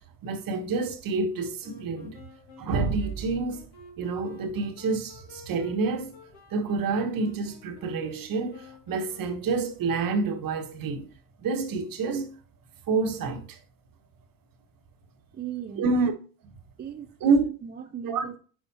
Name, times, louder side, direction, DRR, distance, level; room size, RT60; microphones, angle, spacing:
voice 1, 0.2-2.2 2.6-3.6 4.0-6.2 6.5-11.1 11.4-12.3 12.9-13.6 15.8-16.1 16.4-16.6 17.2-17.4 18.0-18.3, right 4 dB, 45° right, 1.5 m, -28 dB
Wind instrument woodwind instrument, 1.6-10.3, left 3 dB, 50° left, 2.3 m, -51 dB
voice 2, 15.3-15.8 16.8-18.4, right 9 dB, 20° right, 0.5 m, -38 dB
9.5 x 4.9 x 2.8 m
hypercardioid pair, 65°, 48 cm